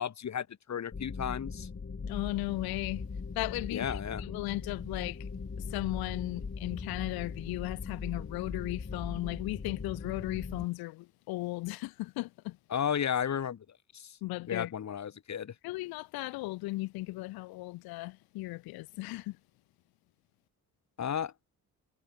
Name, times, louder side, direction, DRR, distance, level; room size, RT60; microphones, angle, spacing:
voice 1, 0.0-1.7 3.7-4.2 12.7-13.6 13.9-14.1 14.5-15.5 21.0-21.3, left 8 dB, 50° left, 1.9 m, -33 dB
sound 1, 0.9-10.6, left 5 dB, 35° left, 4.9 m, -40 dB
voice 2, 2.1-3.1 3.3-5.3 5.6-12.6 14.2-14.7 15.6-19.4, left 20 dB, 90° left, 1.2 m, -36 dB
supercardioid pair, 65°, 36 cm